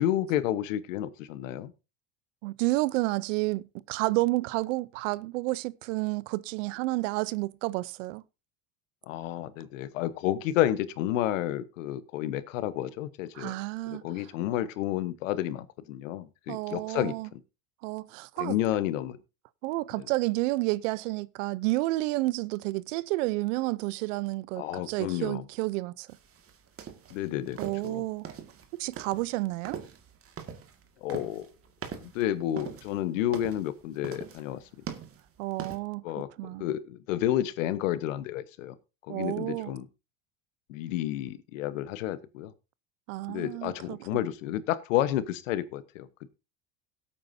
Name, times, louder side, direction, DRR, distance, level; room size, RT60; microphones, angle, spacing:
voice 1, 0.0-1.7 9.1-13.6 13.9-17.4 18.4-19.2 20.0-20.1 24.6-25.4 27.1-27.6 27.8-28.0 31.0-31.5 32.0-34.6 36.0-36.3 36.6-38.7 39.1-39.9 40.7-42.5 43.3-46.3, left 12 dB, 85° left, 1.2 m, -30 dB
voice 2, 2.4-8.2 13.4-14.0 16.5-17.3 17.8-18.5 19.6-26.1 27.6-28.2 28.8-29.8 35.4-36.0 36.4-36.6 39.1-39.7 43.1-44.0, right 20 dB, 80° right, 0.7 m, -30 dB
sound 1, 26.1-35.8, right 7 dB, 35° right, 2.0 m, -42 dB
17.0 x 8.7 x 2.7 m
supercardioid pair, 105°, 38 cm